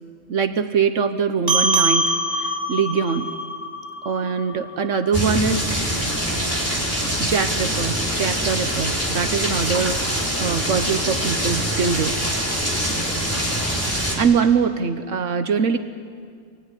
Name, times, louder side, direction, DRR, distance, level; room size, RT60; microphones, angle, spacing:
voice 1, 0.3-3.3 4.0-5.8 7.0-12.3 13.9-15.8, right 6 dB, 75° right, 9 dB, 1.3 m, -23 dB
sound 1, 1.5-6.3, right 1 dB, 30° right, 2.8 m, -25 dB
sound 2, 5.1-14.1, equal, 10° right, 4.7 m, -24 dB
26.0 x 19.5 x 9.8 m, 2.1 s
omnidirectional pair, 1.3 m